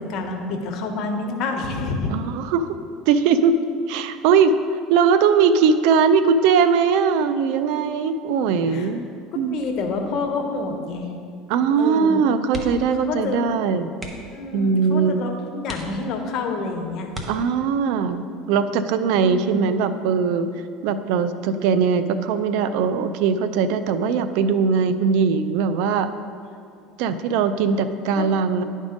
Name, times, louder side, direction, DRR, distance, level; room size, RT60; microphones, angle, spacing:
voice 1, 0.0-2.1 8.7-8.9 9.5-11.1 11.8-12.2 13.0-13.4 14.3-17.1 19.1-19.6 28.1-28.3, left 3 dB, 55° left, 3 dB, 1.0 m, -28 dB
voice 2, 2.1-2.7 3.1-3.6 3.9-4.6 4.9-9.1 9.3-9.6 11.5-13.9 14.5-15.2 17.3-20.5 20.8-26.1 27.0-28.6, right 6 dB, 70° right, 11 dB, 0.4 m, -20 dB
sound 1, 12.5-13.0 13.3-13.5 13.9-14.4 15.0-15.1 15.6-16.4 17.1-17.9 19.4-19.7 20.1-20.2, equal, 15° right, 1.0 m, -37 dB
10.5 x 3.6 x 5.1 m, 2.4 s
supercardioid pair, 120°, 0 cm